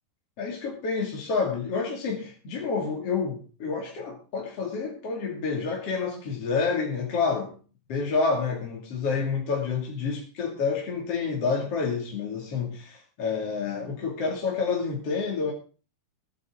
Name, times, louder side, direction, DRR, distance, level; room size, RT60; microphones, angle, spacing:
voice 1, 0.4-7.6 7.9-15.5, left 5 dB, 40° left, 0 dB, 3.0 m, -28 dB
21.0 x 10.0 x 3.8 m, 0.37 s
omnidirectional pair, 4.7 m